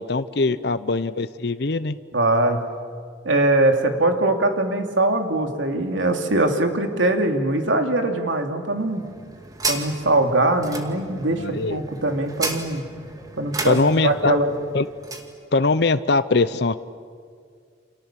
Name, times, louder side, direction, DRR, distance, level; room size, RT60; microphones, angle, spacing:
voice 1, 0.0-2.0 11.3-11.8 13.7-14.3 14.7-14.8 15.5-16.8, left 3 dB, 60° left, 13 dB, 0.7 m, -21 dB
voice 2, 2.1-2.6 3.2-9.0 9.7-12.9 13.4-13.8 14.0-14.5, right 2 dB, 90° right, 5 dB, 2.9 m, -21 dB
sound 1, 8.7-15.3, right 3 dB, 20° right, 2.2 m, -33 dB
29.5 x 27.0 x 7.5 m, 2.1 s
head